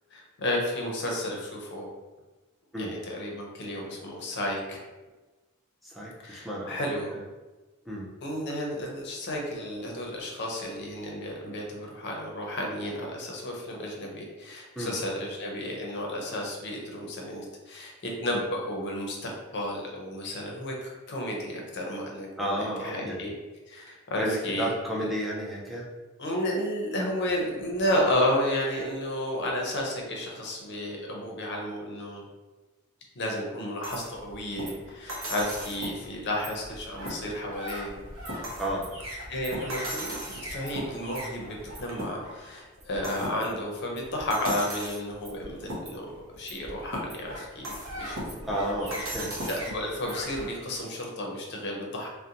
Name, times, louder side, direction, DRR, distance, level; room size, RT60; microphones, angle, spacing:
voice 1, 0.1-1.9 2.8-4.8 6.2-7.1 8.2-23.3 23.7-24.7 25.0-25.1 26.2-32.2 33.2-38.0 39.3-40.2 40.5-48.2 48.5-48.7 49.0-52.1, left 1 dB, 55° left, -1 dB, 0.6 m, -32 dB
voice 2, 5.8-7.2 7.9-8.1 14.8-14.9 22.4-23.2 24.2-25.9 38.6-38.9 48.4-49.3, equal, ahead, -5 dB, 0.4 m, -32 dB
sound 1, 33.8-50.5, equal, 65° right, 0.7 m, -38 dB
2.5 x 2.0 x 2.7 m, 1.2 s
head